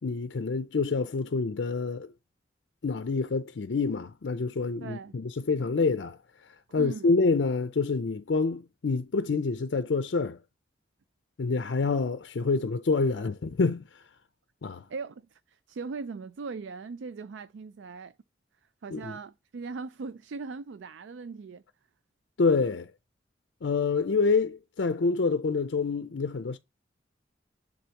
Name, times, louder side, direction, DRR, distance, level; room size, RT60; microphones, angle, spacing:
voice 1, 0.0-2.1 2.8-6.2 6.7-10.4 11.4-14.0 14.6-14.8 18.9-19.1 22.4-22.9 23.6-26.6, left 4 dB, 70° left, 0.5 m, -27 dB
voice 2, 4.8-5.2 6.8-7.1 14.9-18.1 18.8-21.6, right 4 dB, 85° right, 0.4 m, -39 dB
10.0 x 3.9 x 2.9 m
head